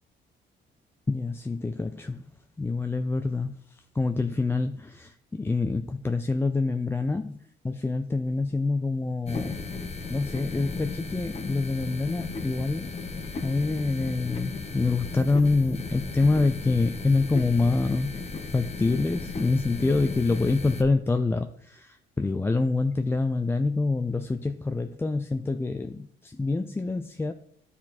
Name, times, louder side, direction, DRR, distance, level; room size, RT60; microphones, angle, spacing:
voice 1, 1.1-2.2 2.6-7.4 7.6-9.6 10.1-12.9 13.4-18.1 18.5-27.3, left 3 dB, 10° left, 7 dB, 0.4 m, -26 dB
sound 1, 9.3-20.8, left 4 dB, 30° left, 1.0 m, -36 dB
11.5 x 4.2 x 4.3 m, 0.68 s
cardioid pair, 90°, 20 cm